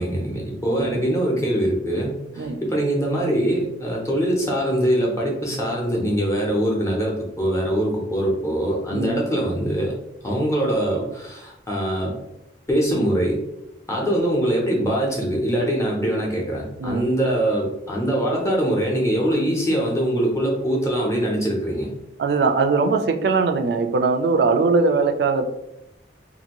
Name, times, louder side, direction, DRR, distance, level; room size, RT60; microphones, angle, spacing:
voice 1, 0.0-9.9 10.2-12.2 12.7-13.4 13.9-21.9, right 1 dB, 15° left, -3 dB, 0.6 m, -23 dB
voice 2, 8.9-9.2 16.8-17.1 22.2-25.5, right 4 dB, 65° right, 6 dB, 0.3 m, -20 dB
2.6 x 2.5 x 2.9 m, 0.88 s
head